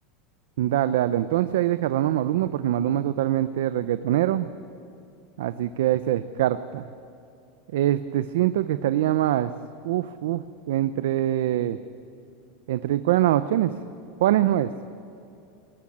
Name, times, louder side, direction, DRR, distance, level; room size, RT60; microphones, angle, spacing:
voice 1, 0.6-4.5 5.4-6.9 7.7-9.5 9.8-11.8 12.7-13.7 14.2-14.7, right 13 dB, 75° right, 12 dB, 0.7 m, -23 dB
22.0 x 19.0 x 8.7 m, 2.6 s
supercardioid pair, 180°, 0 cm